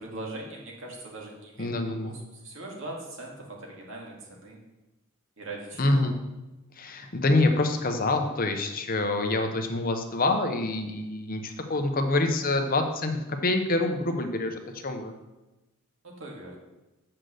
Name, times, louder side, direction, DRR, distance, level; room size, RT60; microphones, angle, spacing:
voice 1, 0.0-4.6 5.4-6.1 16.0-16.6, right 2 dB, 65° right, -1 dB, 2.3 m, -41 dB
voice 2, 1.6-2.2 5.8-6.2 6.8-15.1, left 2 dB, 40° left, 5 dB, 0.9 m, -26 dB
7.8 x 6.0 x 6.6 m, 1.0 s
head